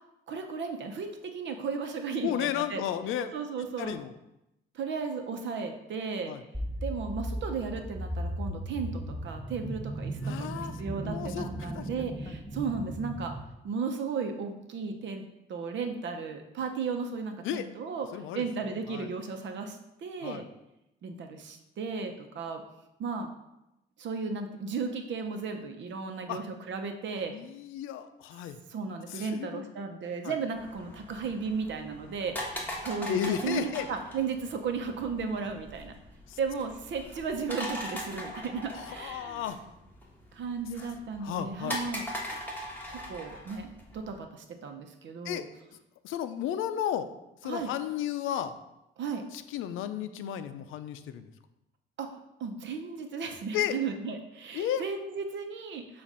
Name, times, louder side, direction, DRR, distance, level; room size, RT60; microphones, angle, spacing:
voice 1, 0.3-2.8 3.3-3.9 4.7-6.3 6.8-13.3 13.6-15.2 15.5-18.1 18.3-20.4 21.0-22.6 23.0-23.3 24.0-27.3 28.7-35.9 36.4-39.4 40.3-42.1 42.9-45.4 47.4-47.7 49.0-49.2 52.0-56.0, right 5 dB, 70° right, 5 dB, 0.8 m, -35 dB
voice 2, 2.2-3.3 3.8-4.1 6.3-6.4 10.2-10.8 11.0-12.1 17.4-17.7 18.1-19.1 20.2-20.4 26.3-26.4 27.3-28.6 29.1-29.7 30.2-30.3 33.1-33.9 36.3-36.4 38.7-39.6 41.2-41.8 45.2-45.5 46.0-47.1 47.4-48.5 49.3-51.2 53.5-53.8 54.5-54.8, left 10 dB, 85° left, 11 dB, 0.5 m, -33 dB
sound 1, 6.5-13.4, right 1 dB, 5° right, 0.8 m, -36 dB
sound 2, 30.5-44.2, equal, 10° left, 1.4 m, -41 dB
7.2 x 2.5 x 5.5 m, 0.89 s
cardioid pair, 90°, 20 cm